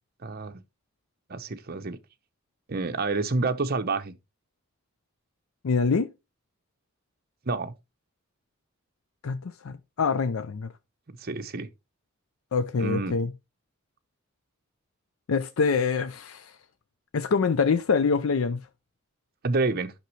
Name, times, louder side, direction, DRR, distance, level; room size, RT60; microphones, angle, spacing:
voice 1, 0.2-0.6 1.3-2.0 2.7-4.1 7.5-7.7 11.1-11.7 12.8-13.2 19.4-19.9, right 3 dB, 50° right, 0.8 m, -28 dB
voice 2, 5.6-6.1 9.2-10.7 12.5-13.3 15.3-16.5 17.1-18.6, left 5 dB, 85° left, 0.5 m, -25 dB
9.2 x 6.0 x 3.2 m
head